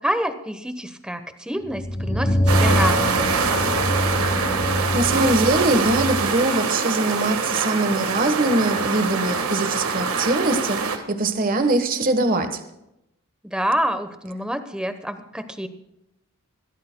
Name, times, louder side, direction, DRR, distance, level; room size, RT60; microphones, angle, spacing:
voice 1, 0.0-3.4 13.4-15.7, equal, 5° right, 9 dB, 0.9 m, -27 dB
sound 1, 1.6-6.3, equal, 30° left, 2.5 m, -24 dB
sound 2, 2.5-11.0, right 5 dB, 90° right, 1.5 m, -24 dB
voice 2, 4.5-12.6, right 2 dB, 40° right, 8 dB, 1.2 m, -22 dB
22.0 x 16.5 x 2.2 m, 0.85 s
head